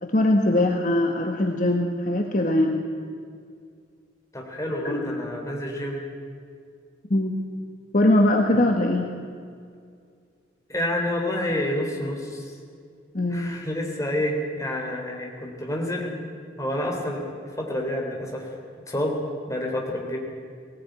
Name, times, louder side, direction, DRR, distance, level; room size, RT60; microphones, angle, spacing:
voice 1, 0.0-2.8 4.8-5.2 7.1-7.4 7.9-9.1 13.1-13.6, left 1 dB, 45° left, 2 dB, 1.4 m, -21 dB
voice 2, 4.3-6.0 10.7-12.5 13.3-16.2 16.6-17.2 17.6-18.5 18.9-19.2 19.5-20.2, left 1 dB, 15° left, 0 dB, 3.5 m, -28 dB
19.0 x 18.0 x 9.3 m, 2.2 s
head